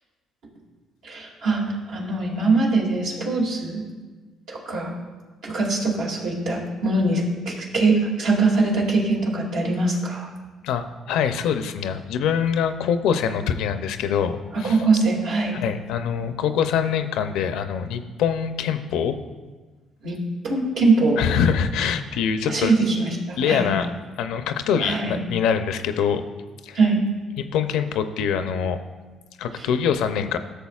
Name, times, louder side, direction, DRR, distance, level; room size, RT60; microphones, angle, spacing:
voice 1, 1.0-3.8 4.5-4.9 5.4-10.3 14.6-15.6 20.0-20.2 20.4-21.2 22.5-23.7 24.8-25.2 26.7-27.0, right 3 dB, 80° right, -3 dB, 2.3 m, -22 dB
voice 2, 10.6-14.8 15.5-19.2 21.2-22.7 23.4-23.9 24.2-26.2 26.6-26.8 27.4-28.8 29.4-30.4, left 7 dB, 80° left, 9 dB, 0.5 m, -24 dB
13.5 x 6.7 x 2.4 m, 1.3 s
supercardioid pair, 80°, 0 cm